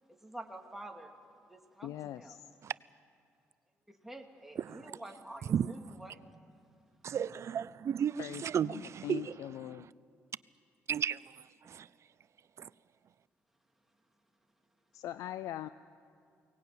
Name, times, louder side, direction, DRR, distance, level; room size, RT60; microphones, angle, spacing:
voice 1, 0.2-1.1 1.5-2.4 3.9-6.2, right 1 dB, 5° right, 2.9 m, -48 dB
voice 2, 1.8-2.5 8.2-9.9 14.9-15.7, left 13 dB, 80° left, 0.5 m, -41 dB
voice 3, 4.6-4.9 5.5-5.7 7.0-9.3 9.8-9.9 10.9-11.9 12.6-12.7, right 8 dB, 55° right, 0.5 m, -34 dB
23.0 x 19.0 x 9.0 m
supercardioid pair, 55°, 6 cm